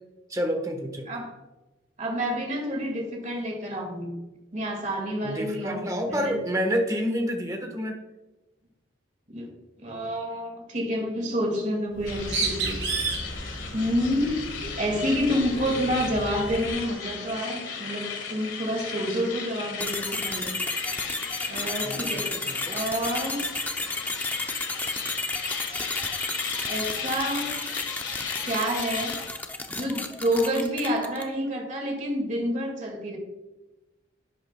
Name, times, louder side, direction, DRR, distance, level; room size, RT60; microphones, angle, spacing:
voice 1, 0.3-1.1 5.2-8.0 21.8-22.8, equal, 15° right, 4 dB, 1.1 m, -29 dB
voice 2, 2.0-4.2 4.5-6.4 9.3-9.5 9.8-12.8 13.7-14.5 14.8-20.6 21.5-22.4 22.7-23.5 26.7-27.5 28.4-29.2 29.7-33.2, equal, 40° right, 1 dB, 2.0 m, -28 dB
Bird, 11.9-16.8, right 3 dB, 70° right, 3.1 m, -33 dB
sound 1, 12.1-29.3, left 6 dB, 75° left, 1.7 m, -36 dB
sound 2, 19.8-31.4, left 2 dB, 10° left, 0.6 m, -32 dB
11.0 x 8.8 x 2.2 m, 1.1 s
head